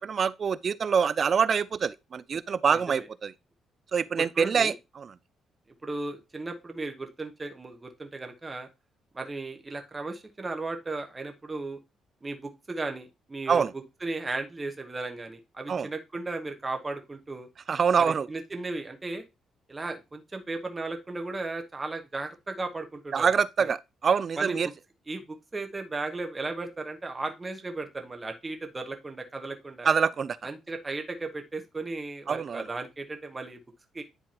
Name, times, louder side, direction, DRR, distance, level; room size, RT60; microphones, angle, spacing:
voice 1, 0.0-3.3 3.9-5.1 13.5-13.7 15.7-15.9 17.7-18.3 23.1-24.7 29.9-30.4 32.3-32.6, right 6 dB, 45° right, 0.4 m, -25 dB
voice 2, 2.7-3.1 4.2-4.7 5.8-8.7 9.1-11.8 12.2-13.7 14.0-17.5 18.0-19.2 19.7-23.3 23.6-23.7 24.4-24.6 25.1-29.9 30.4-33.6 33.9-34.0, right 3 dB, 25° right, 1.1 m, -36 dB
10.5 x 3.9 x 2.9 m
cardioid pair, 90°, 0 cm